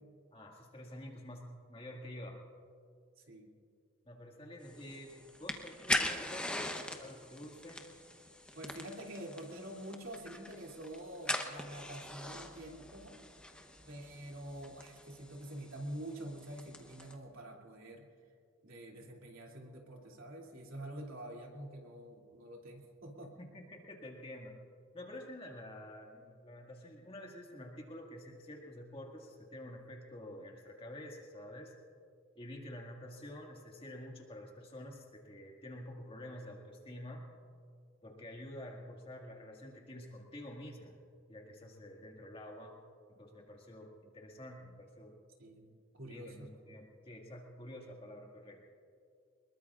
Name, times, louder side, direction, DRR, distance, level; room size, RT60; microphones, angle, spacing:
voice 1, 0.3-2.4 4.0-6.6 7.0-7.9 23.4-24.6 24.9-31.7 32.4-37.2 38.0-41.0 41.3-42.7 43.1-45.1 46.1-48.6, left 1 dB, 25° left, 0 dB, 2.0 m, -49 dB
voice 2, 3.2-3.5 8.5-13.2 13.9-18.0 18.6-23.3 45.4-46.5, right 1 dB, 75° right, -1 dB, 2.8 m, -47 dB
sound 1, 4.6-17.1, left 1 dB, 5° left, 0.9 m, -42 dB
24.5 x 22.0 x 2.5 m, 2.3 s
head